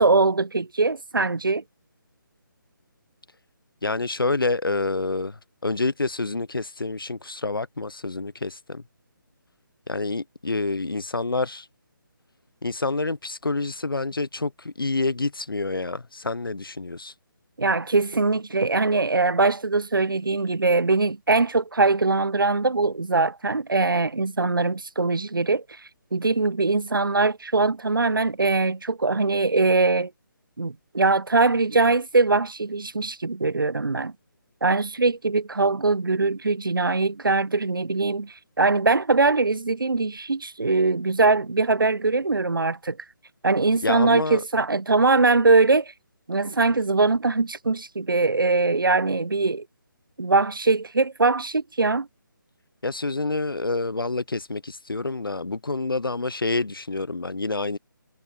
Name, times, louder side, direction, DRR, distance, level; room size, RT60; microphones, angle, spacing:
voice 1, 0.0-1.6 17.6-25.6 26.1-30.1 30.6-34.1 34.6-43.0 43.4-45.9 46.3-49.7 50.2-52.1, right 3 dB, 75° right, 0.9 m, -22 dB
voice 2, 3.8-8.8 9.9-11.7 12.6-17.1 43.8-44.4 52.8-57.8, left 3 dB, 85° left, 0.7 m, -28 dB
figure-of-eight pair, 150°, 11 cm